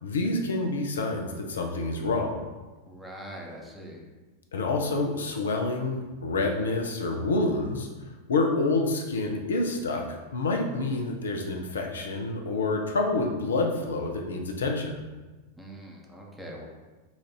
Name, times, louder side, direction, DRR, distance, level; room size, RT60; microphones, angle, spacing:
voice 1, 0.0-2.4 4.5-7.9 8.3-15.0, left 2 dB, 65° left, 2 dB, 0.6 m, -28 dB
voice 2, 2.9-4.1 15.6-16.7, equal, 5° right, -2 dB, 0.9 m, -42 dB
4.1 x 2.5 x 4.7 m, 1.2 s
figure-of-eight pair, 90°, 0 cm